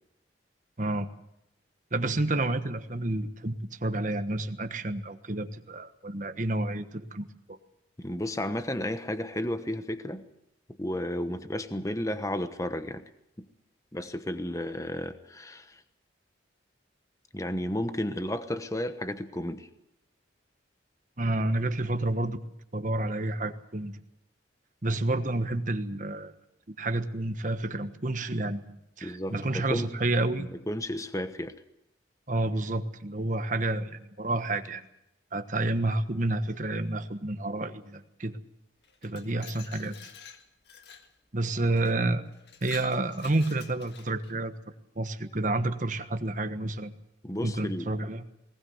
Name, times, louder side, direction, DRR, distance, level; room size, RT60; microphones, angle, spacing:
voice 1, 0.8-1.1 1.9-7.6 21.2-22.4 22.7-24.0 24.8-26.3 26.8-28.7 29.0-30.5 32.3-34.8 35.3-38.4 39.0-39.9 41.3-42.2 42.6-44.5 45.0-46.9 47.4-48.2, right 2 dB, 40° right, 8 dB, 1.3 m, -29 dB
voice 2, 8.0-10.2 10.8-13.0 13.4-13.5 13.9-15.8 17.3-19.7 29.0-29.9 30.4-31.5 47.2-47.9, left 1 dB, 15° left, 10 dB, 1.0 m, -33 dB
Glass, 38.8-41.1 41.8-41.9 42.3-44.4, left 7 dB, 60° left, 1.7 m, -49 dB
20.0 x 19.0 x 7.9 m, 0.84 s
head